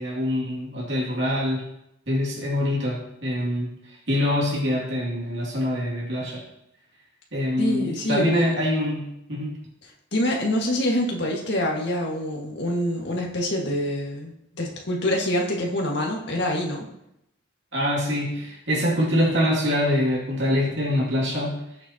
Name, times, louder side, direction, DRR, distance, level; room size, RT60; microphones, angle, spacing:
voice 1, 0.0-1.6 2.1-3.7 4.1-6.4 7.3-9.6 17.7-21.6, left 1 dB, 60° right, -4 dB, 2.6 m, -24 dB
voice 2, 7.6-8.6 9.8-16.9, left 1 dB, 55° left, -1 dB, 2.0 m, -26 dB
19.5 x 7.3 x 3.0 m, 0.82 s
head